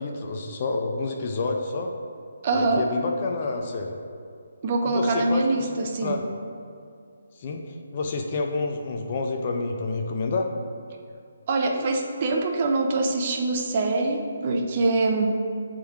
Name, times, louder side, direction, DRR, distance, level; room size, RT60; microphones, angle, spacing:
voice 1, 0.0-1.9 2.5-3.9 4.9-5.8 6.0-6.2 7.4-7.6 7.9-10.5, left 3 dB, 30° left, 3 dB, 0.5 m, -28 dB
voice 2, 2.4-2.9 4.6-6.2 11.5-15.4, right 3 dB, 30° right, 3 dB, 0.4 m, -24 dB
8.4 x 3.7 x 3.5 m, 2.4 s
hypercardioid pair, 170°, 0 cm